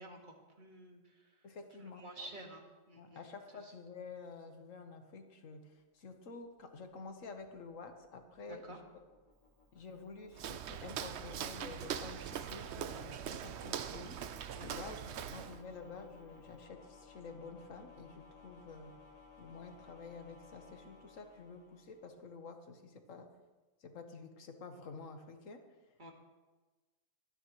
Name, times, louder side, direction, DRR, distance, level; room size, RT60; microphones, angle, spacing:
voice 1, 0.0-1.3 1.8-3.2 3.6-3.7 8.4-8.8 14.5-14.9 26.0-26.1, right 1 dB, 35° right, 1 dB, 1.9 m, -51 dB
voice 2, 1.4-2.3 3.0-8.9 9.7-18.9 19.4-23.3 23.8-25.6, left 4 dB, 75° left, 6 dB, 1.5 m, -50 dB
sound 1, 6.4-22.4, left 4 dB, 35° left, 3.6 m, -61 dB
Walk footsteps, 10.3-15.6, right 9 dB, 60° right, 0.8 m, -42 dB
23.5 x 9.9 x 3.1 m, 1.3 s
omnidirectional pair, 1.4 m